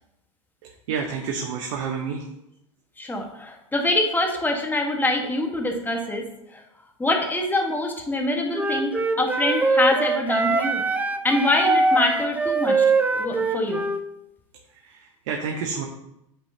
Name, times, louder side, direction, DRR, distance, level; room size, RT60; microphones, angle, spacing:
voice 1, 0.6-2.3 14.7-15.8, right 5 dB, 65° right, 1 dB, 1.1 m, -30 dB
voice 2, 3.0-6.3 6.5-6.6 7.0-10.8 11.2-12.9 13.1-13.8, left 1 dB, 10° left, 2 dB, 1.5 m, -25 dB
Wind instrument woodwind instrument, 8.5-14.0, right 3 dB, 10° right, 0.5 m, -22 dB
8.8 x 5.2 x 2.9 m, 0.82 s
hypercardioid pair, 90°, 17 cm